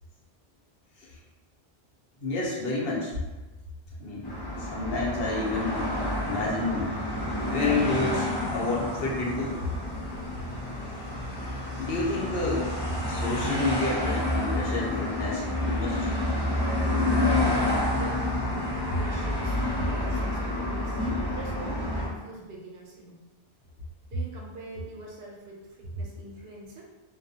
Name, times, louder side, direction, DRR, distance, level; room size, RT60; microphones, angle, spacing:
voice 1, 2.2-3.1 4.0-4.3 4.6-5.9 6.2-7.0 7.5-9.6 11.7-12.7 13.1-16.1, left 2 dB, 70° left, -4 dB, 0.8 m, -29 dB
sound 1, 4.2-22.1, left 1 dB, 30° left, 0.5 m, -29 dB
voice 2, 17.9-18.6 19.0-21.0 21.3-23.2 24.1-26.8, right 2 dB, 75° right, -2 dB, 0.8 m, -44 dB
2.3 x 2.1 x 2.7 m, 1.1 s
omnidirectional pair, 1.1 m